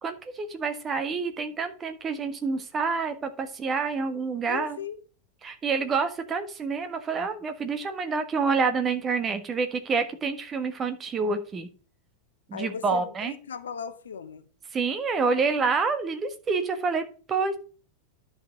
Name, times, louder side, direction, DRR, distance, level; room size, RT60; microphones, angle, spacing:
voice 1, 0.0-4.8 5.4-11.7 12.5-13.3 14.7-17.6, right 4 dB, 20° right, 1.4 m, -28 dB
voice 2, 4.5-5.0 12.5-14.5, left 7 dB, 65° left, 1.0 m, -37 dB
10.5 x 5.3 x 5.1 m
figure-of-eight pair, 90°, 0 cm